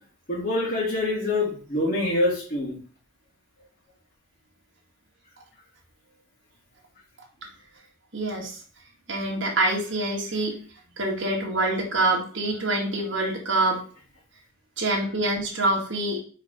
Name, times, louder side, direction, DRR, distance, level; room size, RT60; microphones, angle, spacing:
voice 1, 0.3-2.7, left 2 dB, 45° left, -6 dB, 2.7 m, -25 dB
voice 2, 8.1-8.6 9.1-10.6 11.0-13.8 14.8-16.2, right 2 dB, 65° right, -2 dB, 1.9 m, -25 dB
4.7 x 4.5 x 5.2 m, 0.42 s
head